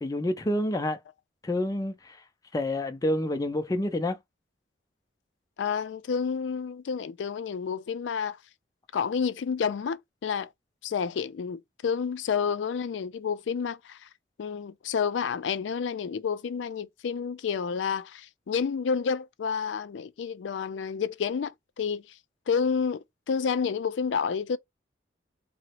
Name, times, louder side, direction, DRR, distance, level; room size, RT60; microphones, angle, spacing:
voice 1, 0.0-1.0 1.4-2.2 2.5-4.2, left 1 dB, 20° left, 0.4 m, -28 dB
voice 2, 5.6-8.4 8.9-10.5 10.8-14.1 14.4-22.0 22.5-24.6, left 6 dB, 90° left, 0.4 m, -30 dB
3.8 x 2.0 x 2.8 m
head